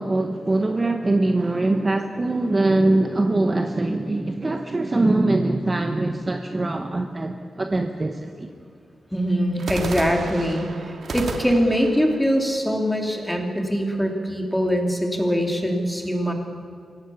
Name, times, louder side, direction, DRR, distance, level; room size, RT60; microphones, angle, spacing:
voice 1, 0.0-8.5, right 2 dB, 25° right, 5 dB, 1.0 m, -22 dB
sound 1, 1.4-2.8 9.6-13.5, right 3 dB, 60° right, 2.3 m, -35 dB
voice 2, 9.1-16.3, equal, ahead, 2 dB, 2.8 m, -23 dB
24.5 x 17.0 x 7.1 m, 2.3 s
wide cardioid pair, 140°, 0 cm